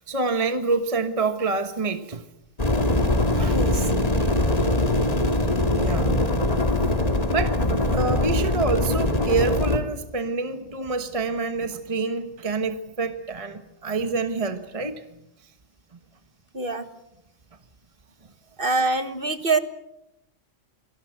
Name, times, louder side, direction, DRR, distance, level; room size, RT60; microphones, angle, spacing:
voice 1, 0.0-2.2 3.3-4.3 5.7-6.1 6.8-6.9 7.3-15.0 15.9-16.0, right 3 dB, 30° right, 1.3 m, -27 dB
sound 1, 2.6-9.8, left 1 dB, 30° left, 2.2 m, -22 dB
voice 2, 3.5-3.8 16.5-16.9 18.6-19.6, right 3 dB, 45° right, 1.9 m, -24 dB
27.5 x 20.0 x 7.9 m
omnidirectional pair, 1.3 m